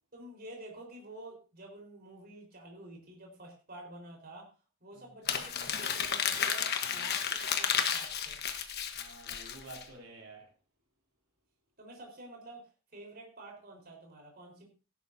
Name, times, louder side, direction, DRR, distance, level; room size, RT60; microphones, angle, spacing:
voice 1, 0.1-4.5 4.8-8.4 11.8-14.7, right 1 dB, 45° right, 4.5 m, -49 dB
Crumpling crinkling, 5.3-9.8, left 7 dB, 50° left, 1.3 m, -32 dB
voice 2, 6.8-7.2 8.9-10.5, right 2 dB, 90° right, 3.3 m, -50 dB
16.5 x 11.5 x 2.8 m
head